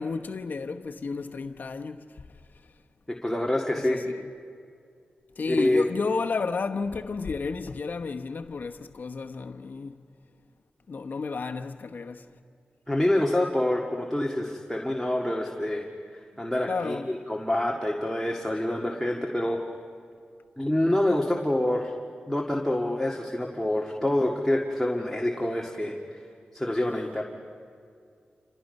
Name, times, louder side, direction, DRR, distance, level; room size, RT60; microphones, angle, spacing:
voice 1, 0.0-2.3 3.7-4.3 5.4-10.0 10.9-12.3 16.7-17.1, left 4 dB, 65° left, 1.0 m, -32 dB
voice 2, 3.1-4.0 5.6-5.9 12.9-15.9 16.4-17.0 17.3-19.6 20.6-21.9 22.3-26.0 26.5-27.2, left 1 dB, 5° left, 1.9 m, -26 dB
28.5 x 26.5 x 5.4 m
cardioid pair, 70°, 3 cm